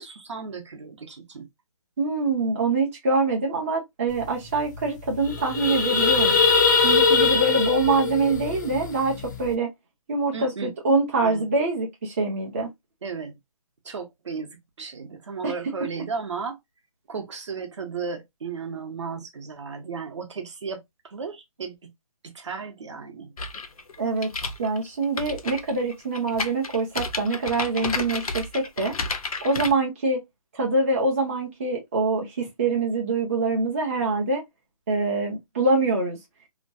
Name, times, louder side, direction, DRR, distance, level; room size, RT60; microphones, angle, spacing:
voice 1, 0.0-1.5 10.3-10.7 11.2-11.5 13.0-13.3 13.8-16.6 17.1-21.9 22.2-23.3, right 5 dB, 50° right, 0.9 m, -35 dB
voice 2, 2.0-6.4 6.8-9.7 10.1-12.7 15.4-15.5 24.0-24.3 24.6-28.9 29.4-30.2 30.5-34.4 34.9-36.2, right 3 dB, 25° right, 0.6 m, -24 dB
sound 1, 4.2-4.3 4.5-4.8 5.1-9.5, left 5 dB, 30° left, 0.5 m, -21 dB
sound 2, 23.4-29.7, left 3 dB, 70° left, 0.7 m, -32 dB
2.9 x 2.2 x 2.6 m
hypercardioid pair, 165°, 19 cm